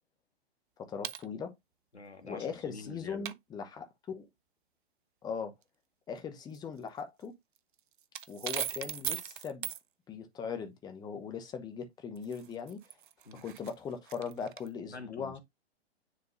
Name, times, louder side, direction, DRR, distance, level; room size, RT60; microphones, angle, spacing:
voice 1, 0.8-1.5 2.2-3.9 4.1-4.3 5.2-5.5 6.1-7.4 8.3-9.7 10.1-12.8 13.3-15.4, left 6 dB, 10° left, 0.9 m, -39 dB
sound 1, 1.0-1.3 3.3-3.4 6.5-6.6 7.2-7.3 7.6-9.8 12.2-14.7, right 10 dB, 50° right, 0.6 m, -39 dB
voice 2, 1.9-3.3 13.2-13.4 14.9-15.4, left 3 dB, 80° left, 1.7 m, -46 dB
9.8 x 3.9 x 2.6 m
figure-of-eight pair, 115°, 32 cm